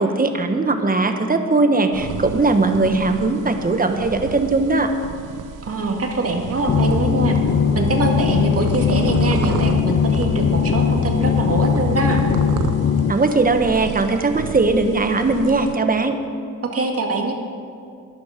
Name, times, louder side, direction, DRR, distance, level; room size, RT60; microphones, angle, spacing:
voice 1, 0.0-4.9 13.1-16.2, right 3 dB, 25° right, 6 dB, 1.2 m, -19 dB
sound 1, 1.9-15.8, right 7 dB, 75° right, 0.8 m, -33 dB
voice 2, 5.7-7.4 7.7-12.3 16.7-17.3, right 3 dB, 45° right, 2 dB, 1.9 m, -23 dB
sound 2, 6.7-13.1, left 7 dB, 40° left, 0.5 m, -19 dB
12.5 x 11.0 x 5.1 m, 2.5 s
cardioid pair, 85°, 32 cm